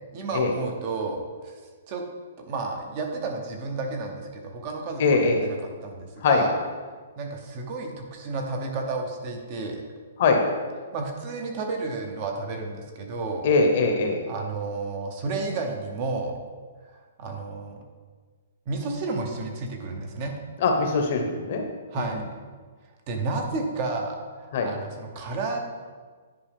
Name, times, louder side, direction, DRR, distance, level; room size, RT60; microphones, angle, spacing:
voice 1, 0.1-1.5 1.9-2.0 2.4-5.6 5.8-6.6 7.2-9.8 10.9-13.5 14.3-16.4 16.9-17.8 18.7-20.3 21.9-22.2 23.1-25.6, right 3 dB, 25° right, 3 dB, 0.8 m, -31 dB
voice 2, 5.0-5.4 6.2-6.4 10.2-10.4 13.4-14.2 20.6-21.6 21.9-22.1 24.5-24.7, left 4 dB, 40° left, 3 dB, 0.9 m, -21 dB
10.0 x 4.7 x 3.5 m, 1.5 s
hypercardioid pair, 175°, 0 cm